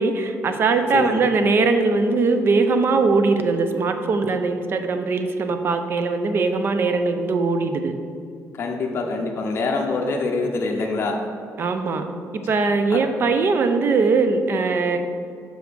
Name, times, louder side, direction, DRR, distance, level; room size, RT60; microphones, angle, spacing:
voice 1, 0.0-8.0 11.6-12.0 12.5-15.0, right 4 dB, 45° right, 7 dB, 0.4 m, -21 dB
voice 2, 8.5-11.2 12.9-13.0, left 3 dB, 45° left, 1 dB, 0.6 m, -25 dB
6.2 x 4.8 x 3.3 m, 2.4 s
cardioid pair, 145°, 6 cm